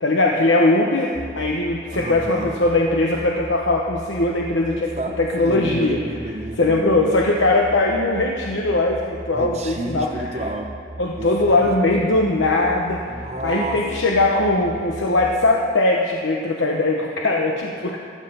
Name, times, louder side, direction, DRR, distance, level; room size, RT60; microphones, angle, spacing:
voice 1, 0.0-6.0 6.6-10.2 11.0-18.0, left 2 dB, 85° left, 0 dB, 1.0 m, -20 dB
sound 1, 1.1-15.2, right 2 dB, 75° right, 1.6 m, -38 dB
voice 2, 1.9-2.7 5.0-7.1 7.9-8.0 9.3-10.7 11.2-11.8 13.1-13.8, right 2 dB, 35° right, 3 dB, 0.9 m, -30 dB
15.5 x 12.0 x 5.5 m, 2.2 s
head